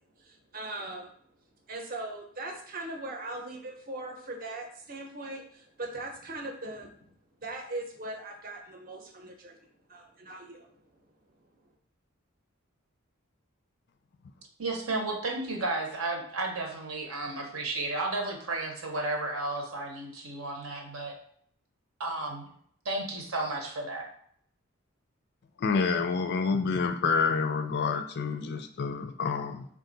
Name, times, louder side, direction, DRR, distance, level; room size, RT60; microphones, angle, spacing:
voice 1, 0.2-1.1 1.7-7.1 7.4-9.6 9.9-10.7, right 2 dB, 45° right, 2 dB, 0.7 m, -40 dB
voice 2, 14.6-21.1 22.0-22.5 22.8-24.0, right 2 dB, 80° right, 1 dB, 0.9 m, -33 dB
voice 3, 25.6-29.7, left 5 dB, 55° left, 7 dB, 0.4 m, -28 dB
3.7 x 2.4 x 3.9 m, 0.62 s
head